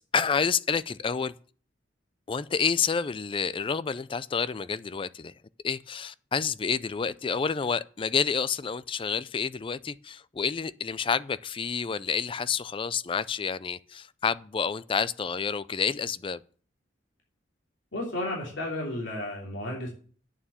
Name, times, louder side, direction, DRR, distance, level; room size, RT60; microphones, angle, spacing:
voice 1, 0.0-1.3 2.3-5.3 5.6-16.4, left 6 dB, 30° left, 0.4 m, -29 dB
voice 2, 17.9-19.9, left 1 dB, 85° left, 3.2 m, -33 dB
8.9 x 7.1 x 7.1 m
head